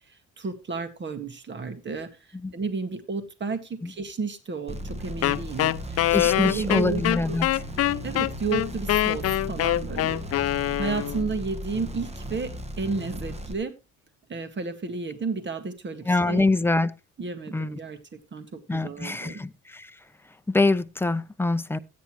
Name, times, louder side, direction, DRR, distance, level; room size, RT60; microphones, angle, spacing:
voice 1, 0.1-2.1 2.5-6.0 6.3-7.4 8.0-10.2 10.8-12.5 12.8-13.7 14.3-16.4 17.2-18.0 18.3-19.4, right 4 dB, 40° right, 1.9 m, -32 dB
sound 1, 4.7-13.5, equal, 20° right, 1.4 m, -36 dB
Wind instrument woodwind instrument, 5.2-11.3, left 13 dB, 50° left, 0.5 m, -24 dB
voice 2, 6.1-7.5 16.1-16.9 17.5-17.7 18.7-19.9 20.5-21.8, left 3 dB, 5° left, 0.7 m, -24 dB
13.5 x 9.5 x 3.1 m
cardioid pair, 90°, 30 cm